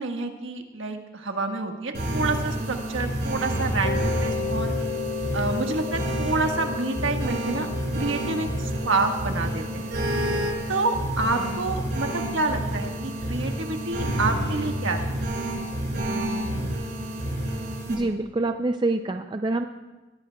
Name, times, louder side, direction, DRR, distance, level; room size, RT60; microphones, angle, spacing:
voice 1, 0.0-4.7 5.3-7.7 7.9-9.9 10.7-15.1, right 3 dB, 85° right, 3 dB, 1.5 m, -28 dB
sound 1, 1.9-17.9, right 1 dB, 55° right, 4.9 m, -29 dB
Mallet percussion, 3.8-12.4, left 6 dB, 70° left, 0.9 m, -36 dB
voice 2, 17.9-19.6, right 2 dB, 25° right, 7 dB, 0.4 m, -26 dB
21.0 x 17.0 x 2.3 m, 1.1 s
head